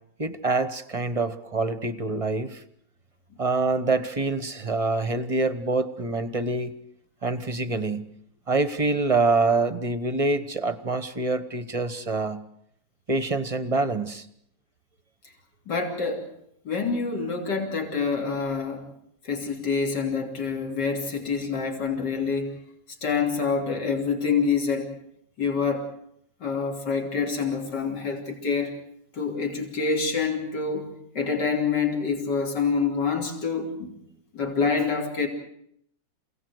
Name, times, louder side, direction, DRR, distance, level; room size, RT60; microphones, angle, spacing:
voice 1, 0.2-2.6 3.4-6.7 7.2-8.1 8.5-12.4 13.1-14.3, right 3 dB, 25° right, 13 dB, 0.9 m, -26 dB
voice 2, 15.7-16.3 16.7-18.8 19.2-22.5 23.0-24.9 25.4-25.9 26.4-28.7 29.1-30.9 31.2-34.0 34.3-35.3, left 5 dB, 70° left, 2 dB, 3.7 m, -26 dB
27.5 x 17.5 x 8.0 m, 0.72 s
omnidirectional pair, 2.0 m